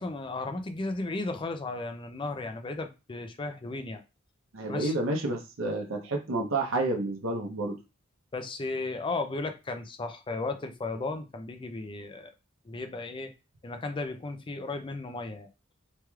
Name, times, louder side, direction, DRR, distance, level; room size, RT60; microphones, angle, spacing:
voice 1, 0.0-4.0 4.7-4.9 8.3-12.3 12.6-13.3 13.6-15.5, left 3 dB, 25° left, 0.4 m, -35 dB
voice 2, 4.5-7.8, right 2 dB, 80° right, 0.7 m, -30 dB
3.1 x 3.0 x 2.3 m
head